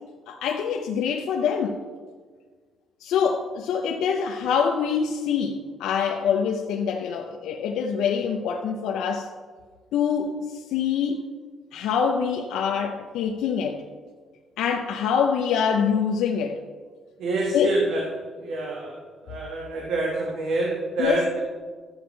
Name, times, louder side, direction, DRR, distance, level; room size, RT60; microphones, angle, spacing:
voice 1, 0.3-1.8 3.0-9.3 9.9-11.2 11.7-13.8 14.6-16.6 17.5-17.7 21.0-21.2, left 7 dB, 85° left, 1 dB, 0.7 m, -25 dB
voice 2, 17.2-18.0 18.4-19.0 19.2-21.4, right 2 dB, 80° right, -2 dB, 1.6 m, -26 dB
14.0 x 8.1 x 3.3 m, 1.5 s
cardioid pair, 90°, 0 cm